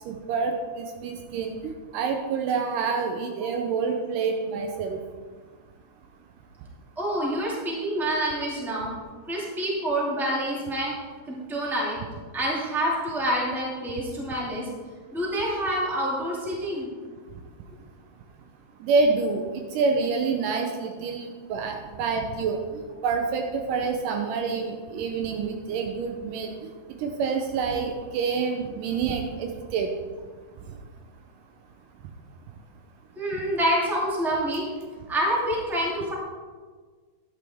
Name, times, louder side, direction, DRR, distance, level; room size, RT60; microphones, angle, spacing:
voice 1, 0.1-5.0 18.8-22.6 23.0-26.5 27.0-29.9, right 4 dB, 80° right, 3 dB, 2.4 m, -27 dB
voice 2, 7.0-8.9 9.3-10.9 11.3-12.0 12.3-14.6 15.1-16.9 33.2-34.7 35.1-36.1, right 1 dB, ahead, -5 dB, 1.9 m, -27 dB
11.5 x 10.5 x 3.6 m, 1.5 s
omnidirectional pair, 3.7 m